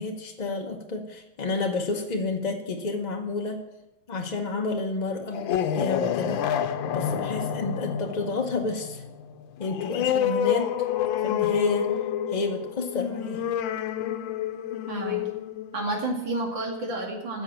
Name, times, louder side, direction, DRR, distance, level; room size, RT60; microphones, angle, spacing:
voice 1, 0.0-3.6 4.1-6.5 6.9-9.0 9.6-10.9 11.2-11.9 12.3-13.4, left 3 dB, 40° left, 3 dB, 0.6 m, -30 dB
sound 1, 5.2-16.4, left 9 dB, 85° left, 1.5 m, -28 dB
voice 2, 14.9-15.2 15.7-17.4, right 2 dB, 75° right, 0 dB, 3.0 m, -30 dB
10.5 x 6.9 x 8.7 m, 0.92 s
omnidirectional pair, 2.1 m